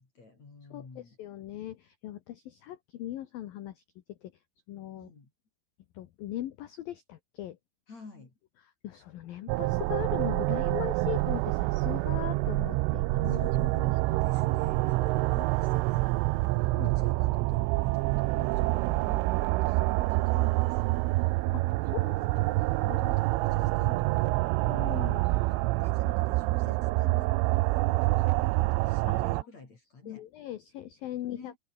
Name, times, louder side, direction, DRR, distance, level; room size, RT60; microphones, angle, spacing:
voice 1, 0.0-1.2 4.9-5.3 7.9-8.3 13.2-13.8 14.2-21.4 21.8-24.4 24.9-30.3 31.3-31.6, left 3 dB, 35° left, 6.0 m, -50 dB
voice 2, 0.7-3.8 4.1-4.3 4.7-5.1 5.9-7.6 8.8-14.2 16.7-17.0 21.5-22.1 22.7-23.0 24.6-25.3 25.6-25.7 27.9-28.0 30.1-31.5, left 13 dB, 70° left, 2.3 m, -39 dB
sound 1, 9.5-29.4, right 21 dB, 85° right, 3.2 m, -27 dB
omnidirectional pair, 5.6 m